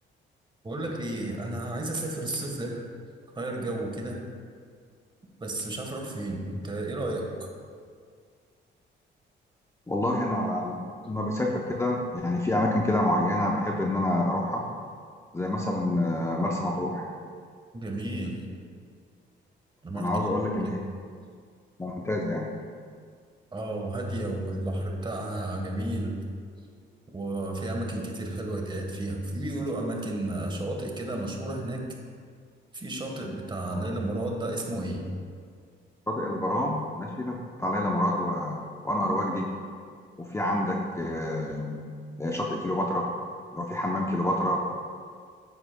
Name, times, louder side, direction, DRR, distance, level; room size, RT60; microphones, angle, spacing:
voice 1, 0.6-2.9 3.3-4.2 5.4-7.5 17.7-18.4 19.8-20.1 20.6-20.8 23.5-26.2 27.1-31.9 32.7-35.1, right 1 dB, 25° right, 1 dB, 1.3 m, -32 dB
voice 2, 9.9-10.8 11.1-14.7 15.3-17.1 20.0-20.8 21.8-22.6 33.7-33.8 36.1-39.5 40.2-41.8 42.2-43.1 43.5-44.6, left 1 dB, 15° left, -1 dB, 0.7 m, -28 dB
9.5 x 7.7 x 2.2 m, 2.1 s
cardioid pair, 90°, 20 cm